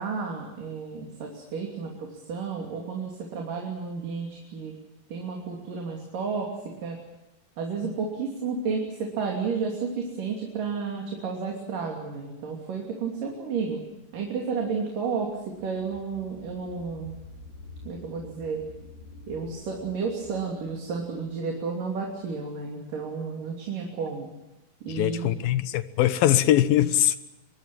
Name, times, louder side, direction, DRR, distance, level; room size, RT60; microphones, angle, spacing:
voice 1, 0.0-4.7 5.1-6.5 6.8-7.0 7.6-13.8 14.1-15.3 15.6-17.1 17.8-18.6 19.3-24.3 24.8-25.4, right 5 dB, 70° right, 0 dB, 4.6 m, -32 dB
sound 1, 13.7-22.7, left 3 dB, 65° left, 8.8 m, -49 dB
voice 2, 24.9-27.2, left 13 dB, 90° left, 13 dB, 2.9 m, -22 dB
24.0 x 22.5 x 7.4 m, 0.96 s
omnidirectional pair, 4.0 m